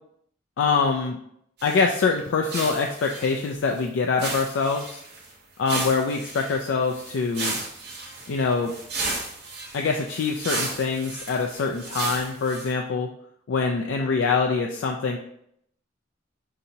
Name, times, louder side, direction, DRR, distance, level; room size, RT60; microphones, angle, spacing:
voice 1, 0.6-1.2 1.6-5.0 5.6-7.6 8.3-8.7 9.7-13.1 13.5-15.2, left 4 dB, 85° left, 1 dB, 0.4 m, -24 dB
sound 1, 1.6-1.9 2.2-2.3 2.5-3.8 4.2-5.3 5.6-12.7, right 3 dB, 60° right, 0.9 m, -34 dB
5.2 x 2.8 x 2.7 m, 0.72 s
head